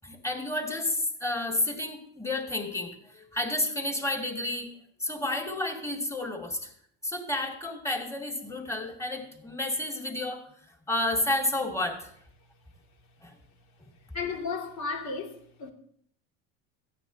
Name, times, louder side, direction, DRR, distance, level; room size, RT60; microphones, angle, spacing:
voice 1, 0.0-4.7 5.0-6.7 7.0-10.4 10.9-12.1 13.2-13.3, left 1 dB, 10° left, 2.3 m, -31 dB
voice 2, 14.1-15.7, left 4 dB, 45° left, 2.6 m, -34 dB
14.5 x 9.2 x 4.0 m
supercardioid pair, 100°, 38 cm